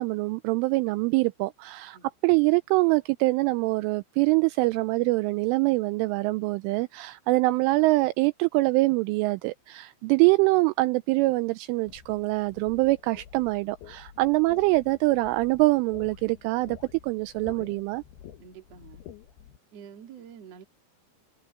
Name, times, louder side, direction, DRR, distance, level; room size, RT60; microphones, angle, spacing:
voice 1, 0.0-2.0 2.2-16.8 17.0-18.0, right 22 dB, 85° right, 2.9 m, -24 dB
sound 1, 11.9-19.6, left 9 dB, 65° left, 2.9 m, -49 dB
voice 2, 18.4-19.0 19.7-20.6, right 7 dB, 45° right, 2.4 m, -47 dB
open air
omnidirectional pair, 5.9 m